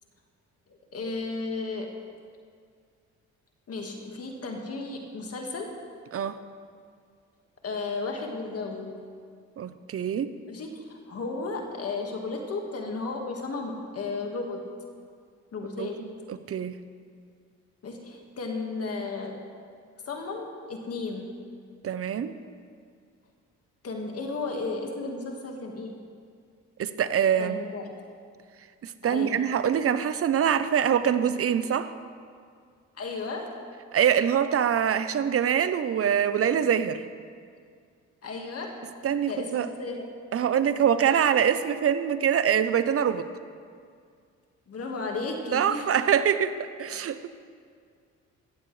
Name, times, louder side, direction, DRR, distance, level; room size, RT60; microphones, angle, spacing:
voice 1, 0.9-2.1 3.7-5.7 7.6-9.0 10.5-14.7 15.5-16.0 17.8-19.4 20.1-21.4 23.8-26.0 27.4-27.9 29.0-29.3 33.0-33.5 38.2-38.8 39.3-40.1 44.7-46.0, left 3 dB, 50° left, 2 dB, 1.8 m, -34 dB
voice 2, 9.6-10.3 15.8-16.8 21.8-22.3 26.8-27.6 28.8-31.9 33.9-37.0 39.0-39.7 40.3-43.3 45.5-46.5 46.8-47.3, right 8 dB, 50° right, 12 dB, 0.8 m, -24 dB
14.5 x 14.5 x 3.3 m, 2.1 s
cardioid pair, 90°, 30 cm